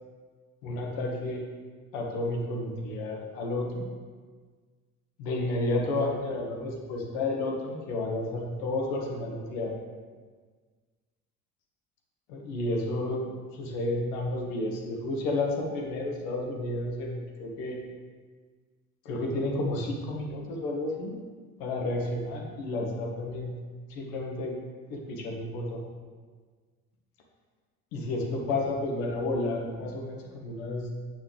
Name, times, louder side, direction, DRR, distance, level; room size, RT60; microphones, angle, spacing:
voice 1, 0.6-1.4 1.9-3.9 5.2-9.7 12.3-17.8 19.1-21.2 21.6-23.6 23.9-24.5 24.9-25.9 27.9-30.9, left 2 dB, 65° left, 0 dB, 1.8 m, -31 dB
9.3 x 6.8 x 3.4 m, 1.5 s
figure-of-eight pair, 55°, 43 cm